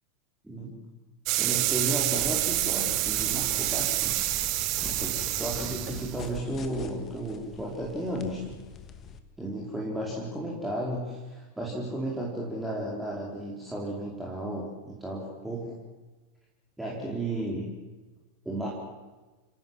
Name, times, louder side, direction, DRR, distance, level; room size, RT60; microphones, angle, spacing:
voice 1, 0.4-0.8 1.4-4.2 4.8-8.6 9.4-15.7 16.8-17.7 18.4-18.7, right 1 dB, 5° right, -4 dB, 4.9 m, -34 dB
sound 1, 1.3-6.4, right 17 dB, 40° right, 1.2 m, -28 dB
sound 2, 1.9-9.2, left 5 dB, 25° left, 2.3 m, -44 dB
29.5 x 17.0 x 7.8 m, 1.2 s
figure-of-eight pair, 90°, 0 cm